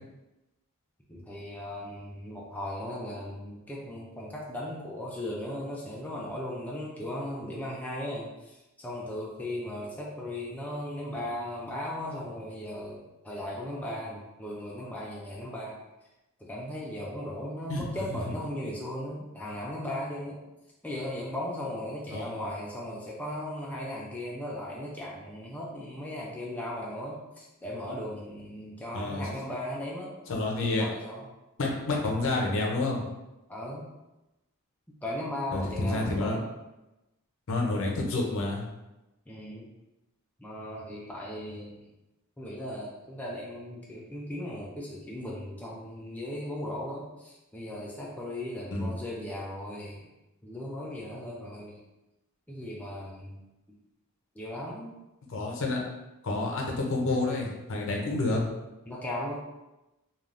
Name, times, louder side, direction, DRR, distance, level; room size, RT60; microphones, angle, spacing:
voice 1, 1.1-15.8 16.4-20.4 20.8-30.2 30.6-31.3 33.5-33.9 35.0-36.5 39.3-39.7 40.4-41.9 42.4-50.1 50.4-51.8 52.5-53.4 54.4-55.0 58.9-59.4, left 1 dB, 5° left, -4 dB, 0.3 m, -37 dB
voice 2, 17.7-18.2 22.1-22.3 28.9-29.2 30.3-30.9 31.6-33.0 35.5-36.4 37.5-38.6 48.7-48.9 55.3-55.8 56.2-58.4, left 2 dB, 65° left, 0 dB, 0.6 m, -29 dB
3.3 x 2.3 x 2.5 m, 1.0 s
head